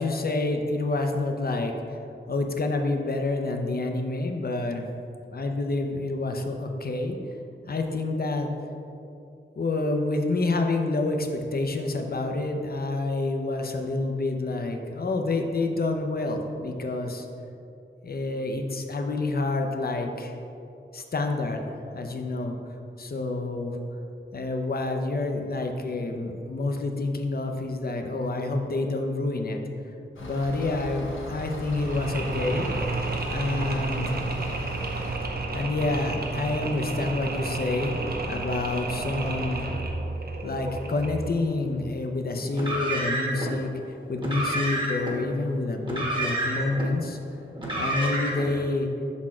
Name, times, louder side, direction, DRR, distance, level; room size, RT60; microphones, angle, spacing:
voice 1, 0.0-2.0 2.3-4.9 5.3-7.2 7.7-8.5 9.6-17.3 18.0-20.3 20.9-22.6 23.0-23.8 24.3-29.6 30.2-32.7 33.3-34.1 35.5-38.0 38.3-39.6 40.4-47.2 47.8-48.9, left 2 dB, 50° left, 4 dB, 0.6 m, -28 dB
sound 1, 30.2-35.2, equal, 75° left, 0.9 m, -38 dB
Mechanisms, 31.6-41.4, right 3 dB, 50° right, 0.7 m, -31 dB
Car, 42.5-43.5 44.2-45.1 45.8-46.9 47.6-48.5, right 1 dB, 25° right, 1.1 m, -29 dB
6.0 x 4.2 x 4.3 m, 2.7 s
wide cardioid pair, 105°, 20 cm